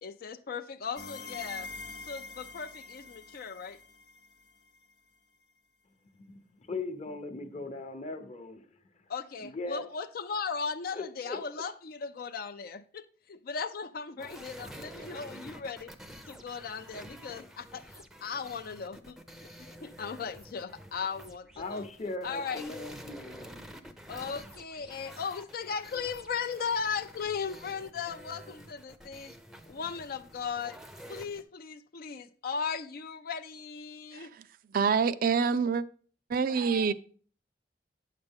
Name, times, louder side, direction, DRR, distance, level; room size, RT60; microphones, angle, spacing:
voice 1, 0.0-1.7 2.1-3.8 9.1-15.9 16.3-21.9 22.2-22.7 24.1-29.4 29.7-30.8 31.1-34.3, left 6 dB, 55° left, 0.4 m, -37 dB
sound 1, 1.0-4.7, left 3 dB, 80° left, 0.9 m, -45 dB
voice 2, 6.2-8.6 9.4-9.8 10.9-11.6 21.6-23.7, left 3 dB, 40° left, 0.8 m, -39 dB
sound 2, 14.2-31.4, equal, 5° right, 0.5 m, -49 dB
voice 3, 34.1-34.4 34.7-35.8 36.3-36.9, right 5 dB, 55° right, 0.4 m, -26 dB
8.7 x 6.6 x 3.5 m
head